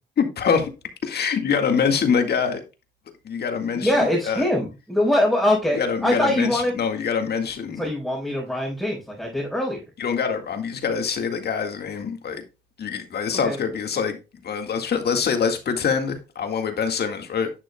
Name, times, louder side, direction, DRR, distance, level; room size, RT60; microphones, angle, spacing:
voice 1, 0.2-0.7 1.0-2.6 3.2-4.5 5.7-7.9 10.0-12.4 12.8-14.2 14.4-17.5, left 6 dB, 55° left, 1.9 m, -24 dB
voice 2, 3.7-6.7 7.8-9.8 13.3-13.6, left 1 dB, ahead, 4.1 m, -23 dB
10.5 x 6.4 x 2.3 m
cardioid pair, 90°, 20 cm